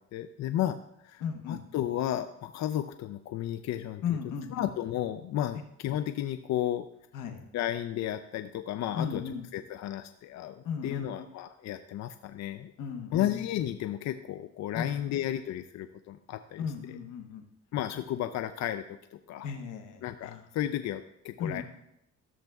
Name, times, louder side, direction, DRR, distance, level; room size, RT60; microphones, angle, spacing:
voice 1, 0.0-4.2 4.5-6.9 7.5-12.7 13.1-16.7 17.7-19.5 20.0-21.6, left 12 dB, 65° left, 10 dB, 0.4 m, -33 dB
voice 2, 1.2-1.6 4.0-4.7 7.1-7.4 8.9-9.4 10.6-11.1 12.8-13.4 14.7-15.2 16.6-17.4 17.9-18.0 19.4-20.4 21.4-21.6, left 7 dB, 85° left, 6 dB, 1.1 m, -36 dB
13.5 x 7.2 x 2.3 m, 0.80 s
cardioid pair, 90°, 30 cm